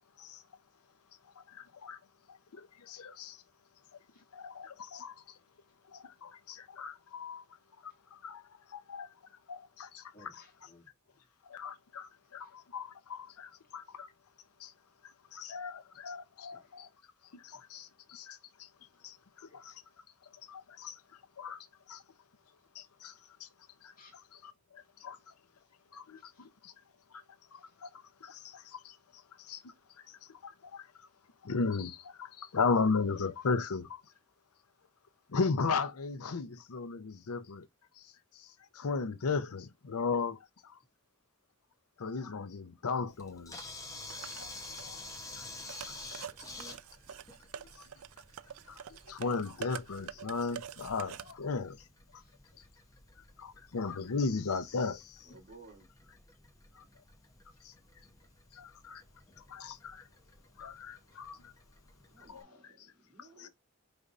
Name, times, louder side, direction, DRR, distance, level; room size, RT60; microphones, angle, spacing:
voice 1, 1.4-2.0 2.3-3.4 4.3-5.2 5.9-7.4 7.8-8.4 8.7-9.1 9.5-10.4 11.5-14.1 14.6-14.7 15.3-16.9 17.3-18.7 19.0-19.7 20.5-21.0 21.4-22.0 22.7-23.1 23.4-23.5 23.8-25.3 25.9-26.7 27.5-29.0 29.4-29.6 30.1-30.9 31.4-34.0 35.3-37.7 38.3-40.7 42.0-43.6 44.4-44.5 44.8-45.0 45.4-45.5 46.2-46.5 48.7-51.8 53.4-55.3 57.6-57.7 58.5-59.0 59.5-60.1 60.6-61.5 62.3-62.4 63.4-63.5, left 4 dB, 85° left, 0.6 m, -36 dB
voice 2, 10.1-10.9 12.4-12.5 16.5-16.7 19.4-19.8 24.0-24.2 26.2-26.5 27.6-27.7 29.5-29.6 46.1-46.2 52.2-52.8 55.3-55.4, left 2 dB, 40° left, 1.7 m, -62 dB
Camera, 43.1-62.4, left 2 dB, 15° left, 0.9 m, -51 dB
sound 1, 44.1-51.3, right 8 dB, 75° right, 0.4 m, -47 dB
voice 3, 55.2-55.9 62.1-63.5, right 2 dB, 45° right, 2.8 m, -56 dB
5.2 x 3.4 x 2.5 m
head